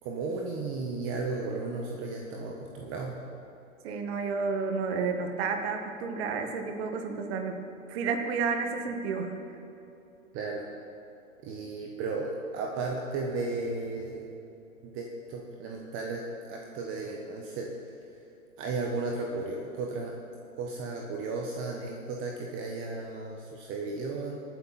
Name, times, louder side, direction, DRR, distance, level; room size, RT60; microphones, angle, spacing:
voice 1, 0.0-3.1 10.3-10.6 11.4-14.2 14.8-16.2 16.5-17.7 18.6-20.1 20.6-24.4, right 3 dB, 30° right, 0 dB, 1.4 m, -34 dB
voice 2, 3.8-9.4, right 5 dB, 50° right, 5 dB, 2.0 m, -31 dB
23.5 x 9.2 x 4.3 m, 2.8 s
hypercardioid pair, 120°, 41 cm